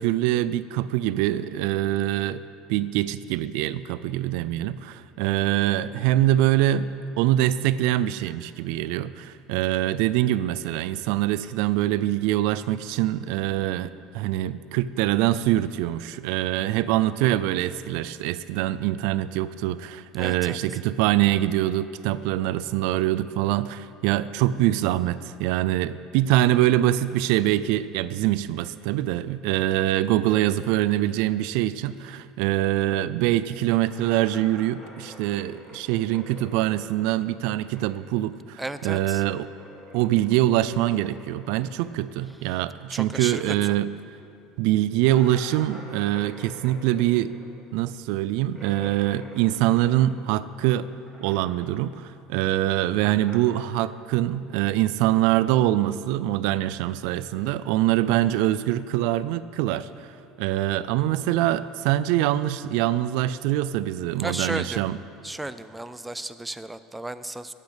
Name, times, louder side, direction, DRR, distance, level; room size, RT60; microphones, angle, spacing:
voice 1, 0.0-2.4 2.7-6.9 7.2-39.5 39.9-43.9 44.6-47.3 47.7-50.9 51.2-59.9 60.4-65.0, right 14 dB, 75° right, 15 dB, 0.4 m, -24 dB
voice 2, 20.2-20.6 38.6-39.2 42.9-43.8 64.2-64.8 65.2-67.5, right 2 dB, 10° right, 12 dB, 0.5 m, -34 dB
sound 1, 33.8-38.1 38.4-43.4 43.7-43.8 44.2-44.3 45.1-50.6 50.9-51.8 52.1-53.6, equal, 5° left, 3.5 m, -47 dB
17.0 x 8.4 x 5.1 m, 2.6 s
supercardioid pair, 100°, 0 cm